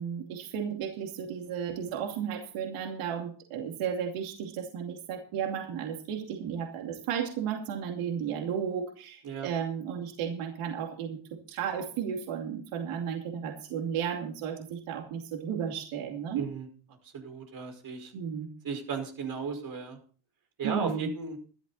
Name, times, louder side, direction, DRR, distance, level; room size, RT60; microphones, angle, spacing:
voice 1, 0.0-16.5 18.1-18.5 20.6-21.1, right 8 dB, 90° right, 2 dB, 2.7 m, -34 dB
voice 2, 16.3-16.7 17.0-18.1 18.6-20.0 20.6-21.4, right 5 dB, 45° right, 5 dB, 5.1 m, -35 dB
14.5 x 12.5 x 4.2 m, 0.41 s
cardioid pair, 135°, 49 cm